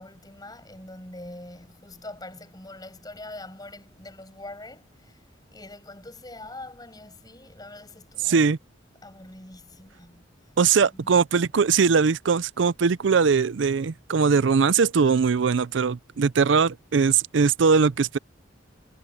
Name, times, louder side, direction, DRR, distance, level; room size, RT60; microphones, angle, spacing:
voice 1, 0.0-8.4 9.0-10.5 11.0-11.2, left 2 dB, 20° left, 7.1 m, -43 dB
voice 2, 8.2-8.6 10.6-18.2, right 5 dB, 65° right, 0.5 m, -21 dB
head